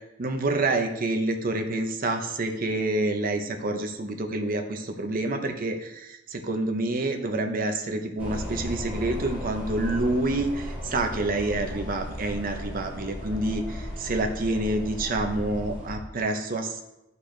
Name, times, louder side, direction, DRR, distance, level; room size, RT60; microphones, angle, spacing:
voice 1, 0.2-16.8, right 2 dB, 45° right, 5 dB, 0.8 m, -28 dB
sound 1, 8.2-16.0, equal, 10° right, 2.6 m, -35 dB
11.5 x 4.1 x 3.3 m, 0.90 s
head